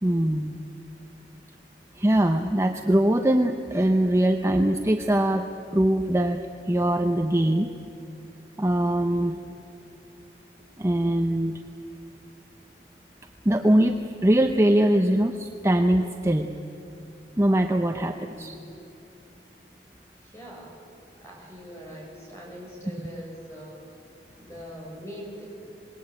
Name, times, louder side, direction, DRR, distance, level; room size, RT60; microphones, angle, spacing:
voice 1, 0.0-0.6 2.0-5.5 5.7-6.4 6.7-7.7 8.6-9.3 10.8-11.6 13.4-13.9 14.2-16.5 17.4-18.5, right 1 dB, 15° right, 4 dB, 0.8 m, -22 dB
voice 2, 9.0-9.5 11.9-12.0 18.0-18.6 20.2-20.8 21.2-23.8 24.4-25.5, equal, 15° left, -2 dB, 6.6 m, -42 dB
26.0 x 21.0 x 8.5 m, 2.6 s
head